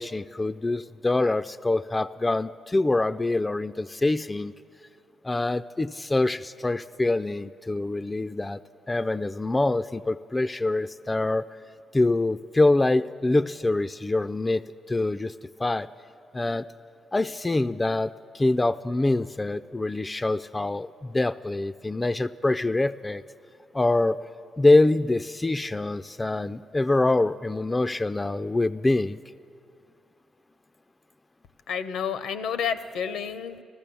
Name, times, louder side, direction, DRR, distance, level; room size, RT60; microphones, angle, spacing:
voice 1, 0.0-4.5 5.2-8.6 8.9-11.5 11.9-15.3 15.6-15.9 16.3-16.7 17.1-23.2 23.7-24.2 24.6-29.2, left 2 dB, 25° left, 12 dB, 0.3 m, -25 dB
voice 2, 31.7-33.6, left 7 dB, 75° left, 12 dB, 0.6 m, -30 dB
14.5 x 14.0 x 6.9 m, 2.4 s
hypercardioid pair, 45°, 0 cm